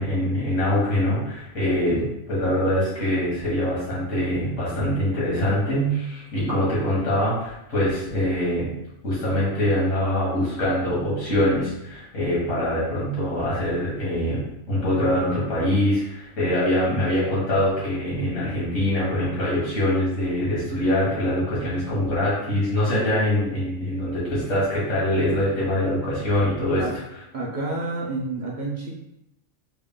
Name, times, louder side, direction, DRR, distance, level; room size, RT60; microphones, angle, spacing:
voice 1, 0.0-8.7 9.0-14.4 14.7-26.8, left 1 dB, 90° left, -8 dB, 2.1 m, -24 dB
voice 2, 27.3-28.9, right 2 dB, 55° right, -4 dB, 0.5 m, -29 dB
4.1 x 2.2 x 3.7 m, 0.86 s
omnidirectional pair, 1.4 m